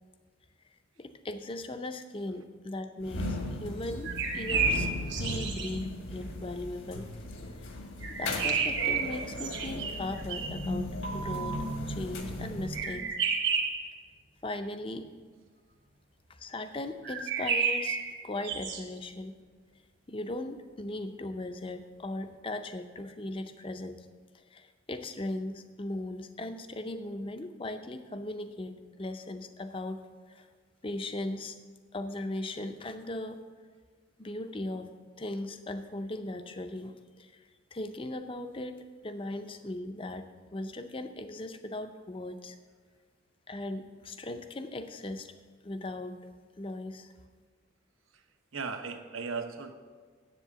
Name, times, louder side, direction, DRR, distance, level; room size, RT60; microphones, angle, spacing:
voice 1, 1.0-7.1 7.6-7.7 8.1-13.1 14.4-15.0 16.3-18.0 18.2-19.4 20.1-24.1 24.3-30.5 30.8-31.6 31.9-33.4 34.2-34.9 35.2-40.3 40.5-42.6 43.5-45.3 45.6-46.2 46.6-47.1, left 2 dB, 25° left, 9 dB, 0.5 m, -38 dB
sound 1, 3.0-13.2, left 1 dB, 70° left, 1.4 m, -37 dB
sound 2, 4.0-5.7 8.0-10.7 12.7-13.9 17.0-18.8, right 5 dB, 55° right, 1.3 m, -31 dB
voice 2, 48.5-49.8, right 4 dB, 80° right, 6 dB, 0.9 m, -37 dB
7.4 x 7.3 x 8.0 m, 1.5 s
head